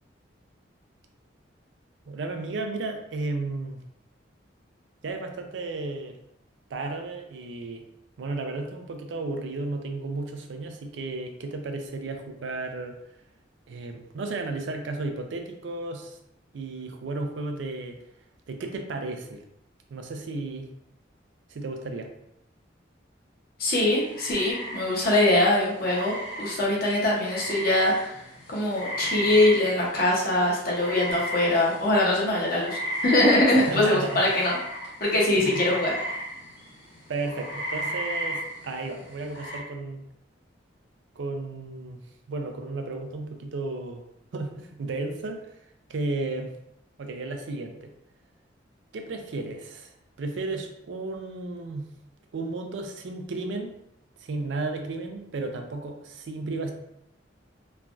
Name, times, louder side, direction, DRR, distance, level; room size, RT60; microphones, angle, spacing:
voice 1, 2.1-3.8 5.0-6.2 6.7-7.8 8.2-13.0 13.7-16.2 16.5-18.0 18.5-19.4 19.9-20.7 21.5-22.1 33.5-34.2 35.4-35.6 37.1-40.0 41.2-42.0 42.3-44.0 44.3-45.5 45.9-46.5 47.0-47.9 48.9-49.9 50.2-51.9 52.3-53.7 54.2-56.7, right 3 dB, 70° right, 5 dB, 0.4 m, -33 dB
voice 2, 23.6-28.1 28.5-34.6 35.0-36.0, left 1 dB, 50° left, -4 dB, 0.8 m, -23 dB
sound 1, 24.0-39.6, equal, 90° left, 1.2 m, -35 dB
3.2 x 2.3 x 2.5 m, 0.80 s
head